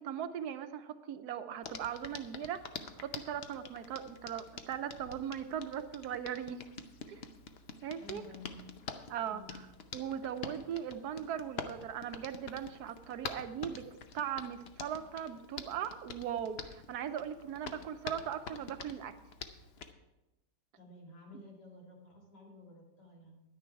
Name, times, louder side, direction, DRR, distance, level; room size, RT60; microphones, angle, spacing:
voice 1, 0.0-6.6 7.1-7.2 7.8-8.2 9.1-9.6 9.9-13.8 14.1-19.1, right 9 dB, 75° right, 10 dB, 1.2 m, -39 dB
Hands, 1.6-19.9, left 5 dB, 55° left, 0.7 m, -47 dB
voice 2, 8.0-8.6 9.3-9.7 20.8-23.4, left 2 dB, 80° left, -1 dB, 3.0 m, -53 dB
10.5 x 9.9 x 4.6 m, 1.0 s
omnidirectional pair, 1.8 m